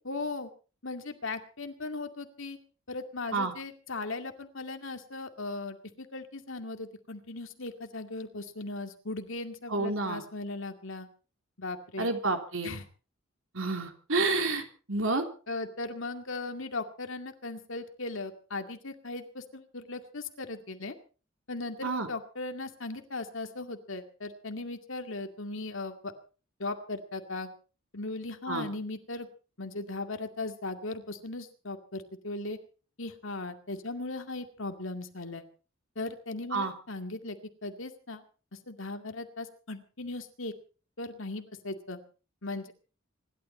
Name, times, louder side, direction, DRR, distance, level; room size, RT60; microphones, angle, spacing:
voice 1, 0.0-0.5 0.8-2.6 2.9-11.1 11.6-12.1 12.6-12.8 15.5-20.9 21.5-26.1 26.6-27.5 27.9-29.3 29.6-32.6 33.0-35.5 36.0-37.4 37.6-38.2 38.7-40.5 41.0-42.0 42.4-42.7, left 2 dB, 65° left, 6 dB, 2.2 m, -38 dB
voice 2, 9.7-10.2 12.0-12.7 13.5-15.2 21.8-22.1 28.5-28.7 36.5-36.7, right 3 dB, 70° right, 5 dB, 3.3 m, -29 dB
26.0 x 12.0 x 4.4 m, 0.38 s
head